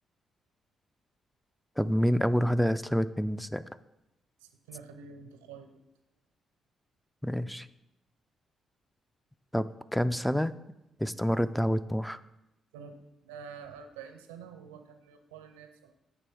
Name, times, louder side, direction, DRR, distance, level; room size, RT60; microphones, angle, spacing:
voice 1, 1.8-3.6 7.2-7.7 9.5-9.7 9.9-10.5 11.0-12.2, equal, ahead, 14 dB, 0.3 m, -27 dB
voice 2, 4.4-5.8 12.7-12.9 13.2-15.9, right 6 dB, 90° right, 7 dB, 0.5 m, -47 dB
8.2 x 3.1 x 4.8 m, 0.91 s
hypercardioid pair, 45°, 0 cm